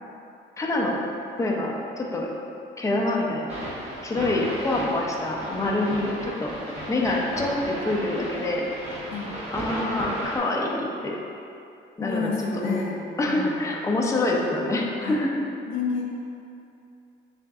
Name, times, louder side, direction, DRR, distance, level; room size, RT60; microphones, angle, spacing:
voice 1, 0.6-1.0 1.4-2.3 2.8-3.5 4.0-6.5 6.9-8.6 9.5-11.2 12.0-12.3 12.6-12.8 13.2-15.3, left 2 dB, 15° left, -1 dB, 0.5 m, -26 dB
sound 1, 3.5-10.4, right 1 dB, 30° right, 1.2 m, -35 dB
voice 2, 9.1-9.4 12.0-13.0 13.3-13.6 15.0-15.2 15.7-16.1, left 5 dB, 80° left, -1 dB, 0.6 m, -29 dB
7.4 x 2.5 x 2.4 m, 2.6 s
cardioid pair, 90°, 20 cm